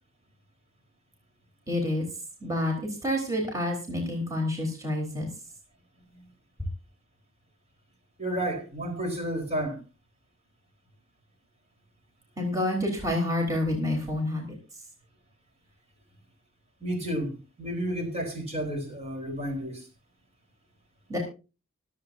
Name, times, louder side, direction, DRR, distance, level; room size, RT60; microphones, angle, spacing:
voice 1, 1.7-2.1 2.4-5.3 12.4-14.5 21.1-21.2, left 1 dB, 15° right, 4.1 m, -28 dB
voice 2, 8.2-9.8 16.8-19.9, right 1 dB, 30° right, 4.2 m, -31 dB
24.5 x 8.4 x 2.7 m
head